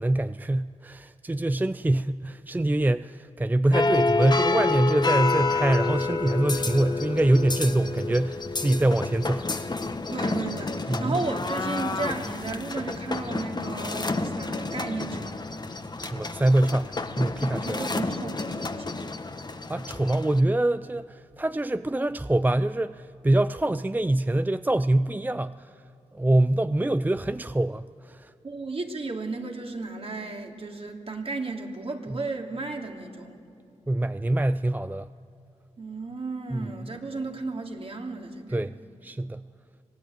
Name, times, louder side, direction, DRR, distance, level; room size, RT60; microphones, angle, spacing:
voice 1, 0.0-9.5 10.9-11.2 16.0-17.8 19.7-25.7 26.1-28.3 32.1-32.2 33.9-35.1 36.5-36.7 38.5-38.7 39.0-39.4, right 1 dB, 15° right, 13 dB, 0.5 m, -24 dB
sound 1, 3.7-20.4, left 3 dB, 35° left, 1.3 m, -29 dB
voice 2, 10.1-15.5 17.6-19.0 28.4-33.4 35.8-38.6, right 3 dB, 50° right, 2 dB, 3.0 m, -34 dB
25.0 x 17.5 x 9.2 m, 2.5 s
cardioid pair, 50°, 13 cm